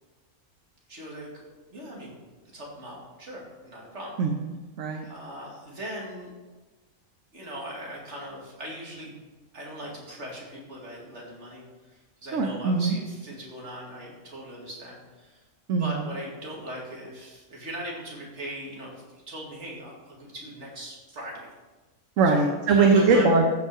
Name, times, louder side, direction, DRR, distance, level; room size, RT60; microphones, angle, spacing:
voice 1, 0.9-2.2 2.4-4.1 5.0-6.3 7.3-9.2 9.5-15.4 15.8-21.5 22.3-23.3, right 1 dB, 55° right, -3 dB, 2.7 m, -40 dB
voice 2, 4.2-5.0 12.3-13.0 15.7-16.0 22.2-23.5, right 3 dB, 70° right, 3 dB, 1.2 m, -21 dB
14.5 x 5.5 x 4.9 m, 1.2 s
omnidirectional pair, 1.4 m